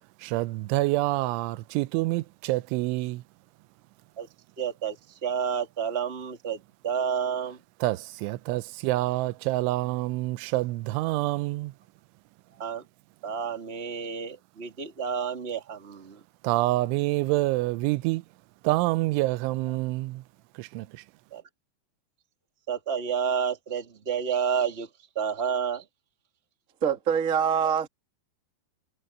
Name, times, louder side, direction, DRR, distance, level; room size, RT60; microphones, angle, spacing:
voice 1, 0.2-3.2 7.8-11.7 16.4-18.2 18.6-20.2 20.6-21.0, right 19 dB, 85° right, 3.1 m, -27 dB
voice 2, 4.6-7.6 12.6-12.8 13.2-16.2 21.3-21.4 22.7-24.9 25.1-25.8, right 7 dB, 20° right, 1.7 m, -30 dB
voice 3, 26.8-27.9, right 7 dB, 40° right, 1.1 m, -24 dB
omnidirectional pair, 5.4 m